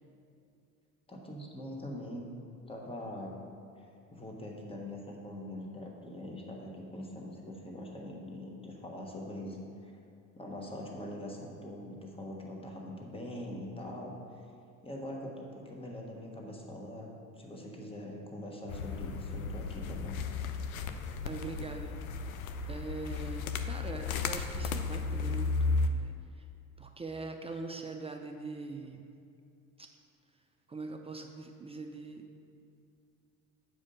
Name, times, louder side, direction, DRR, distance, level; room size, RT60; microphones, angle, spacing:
voice 1, 1.1-2.3 2.7-3.3 4.1-9.9 10.3-14.4 14.8-17.1 17.4-20.2, left 1 dB, 15° left, -1 dB, 1.4 m, -43 dB
sound 1, 18.7-25.9, left 4 dB, 80° left, 0.6 m, -34 dB
voice 2, 21.2-22.0 22.7-26.5 26.8-29.1 29.8-29.9 30.7-32.4, right 3 dB, 15° right, 4 dB, 0.5 m, -42 dB
8.2 x 5.0 x 5.4 m, 2.5 s
hypercardioid pair, 65°, 41 cm